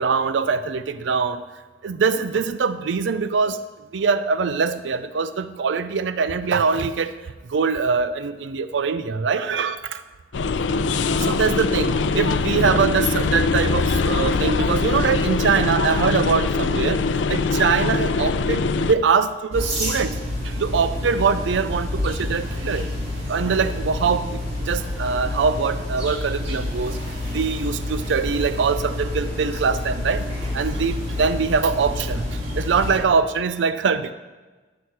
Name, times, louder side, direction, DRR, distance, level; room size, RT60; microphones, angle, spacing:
voice 1, 0.0-1.4 1.8-3.6 3.9-7.1 7.5-9.8 11.3-17.0 17.3-20.2 20.6-22.9 23.3-24.3 24.7-26.9 27.3-30.2 30.5-32.2 32.6-34.1, right 5 dB, 85° right, 13 dB, 0.5 m, -23 dB
sound 1, 10.3-18.9, left 4 dB, 90° left, 0.5 m, -22 dB
sound 2, 19.5-33.0, left 1 dB, 35° right, 2.6 m, -28 dB
13.0 x 6.3 x 4.7 m, 1.3 s
head